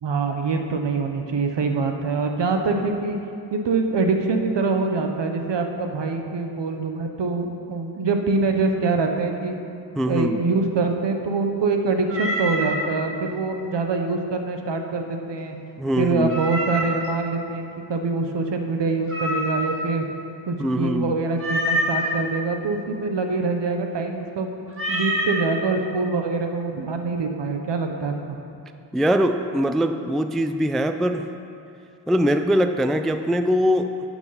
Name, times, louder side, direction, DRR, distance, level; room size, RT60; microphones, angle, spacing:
voice 1, 0.0-3.2 3.5-9.5 10.1-15.6 16.0-20.1 20.5-24.5 24.9-28.4, right 3 dB, 70° right, 4 dB, 1.1 m, -24 dB
voice 2, 10.0-10.4 15.8-16.4 20.6-21.1 28.9-31.2 32.1-33.9, equal, ahead, 8 dB, 0.3 m, -22 dB
Meow, 12.1-12.8 16.3-17.1 19.1-19.9 21.4-22.1 24.7-25.4, equal, 30° right, 1.9 m, -26 dB
11.0 x 6.1 x 5.7 m, 2.5 s
cardioid pair, 70°, 45 cm